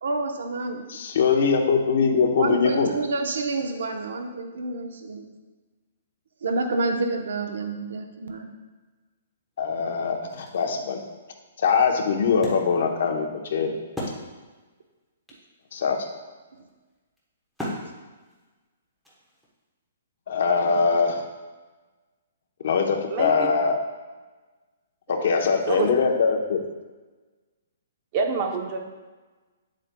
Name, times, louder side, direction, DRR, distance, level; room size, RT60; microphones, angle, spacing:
voice 1, 0.0-0.9 2.4-5.3 6.4-8.5, right 3 dB, 75° right, 4 dB, 0.8 m, -28 dB
voice 2, 0.9-2.9 9.6-11.0 11.6-13.8 15.7-16.0 20.3-21.3 22.6-23.8 25.1-26.6, left 5 dB, 50° left, 3 dB, 0.8 m, -22 dB
Wood, 9.5-9.6 10.1-14.7 15.0-15.1 15.3-19.6, left 1 dB, ahead, 1.0 m, -39 dB
voice 3, 23.1-23.5 25.7-25.9 28.1-28.8, right 5 dB, 25° right, 4 dB, 0.7 m, -26 dB
8.9 x 7.4 x 2.2 m, 1.3 s
hypercardioid pair, 175°, 0 cm